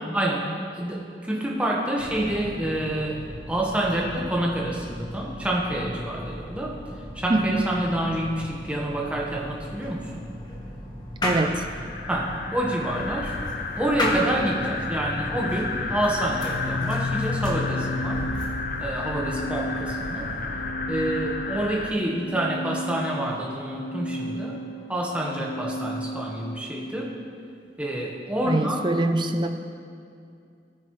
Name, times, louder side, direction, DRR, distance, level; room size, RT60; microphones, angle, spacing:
voice 1, 0.0-3.2 3.5-6.7 7.1-10.2 12.1-13.3 13.8-18.3 18.8-20.3 20.9-24.6 24.9-27.1 27.8-28.9, right 1 dB, 5° right, -3 dB, 1.4 m, -28 dB
sound 1, 2.0-20.7, left 1 dB, 25° left, 1.5 m, -36 dB
voice 2, 7.3-7.6 11.2-11.6 28.4-29.5, right 2 dB, 25° right, 7 dB, 0.6 m, -23 dB
sound 2, 11.5-21.9, left 3 dB, 50° left, 0.7 m, -32 dB
Organ, 16.3-27.0, left 1 dB, 85° left, 0.8 m, -34 dB
18.0 x 9.0 x 3.3 m, 2.4 s
head